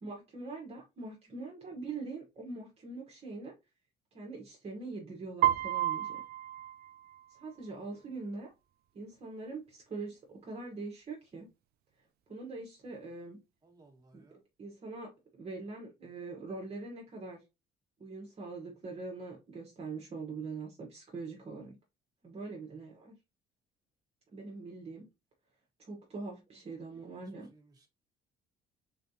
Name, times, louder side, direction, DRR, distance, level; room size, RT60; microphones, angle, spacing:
voice 1, 0.0-3.5 4.1-6.2 7.3-8.5 8.9-11.5 12.3-13.4 14.1-14.2 14.6-17.4 18.0-21.7 22.2-23.1 24.3-25.0 25.8-27.5, right 3 dB, 35° right, 1.2 m, -43 dB
Piano, 5.4-7.5, right 13 dB, 65° right, 0.4 m, -31 dB
voice 2, 13.6-14.4 26.9-27.2 27.5-27.9, right 2 dB, 20° right, 1.6 m, -61 dB
3.9 x 3.2 x 2.7 m
cardioid pair, 110°, 17 cm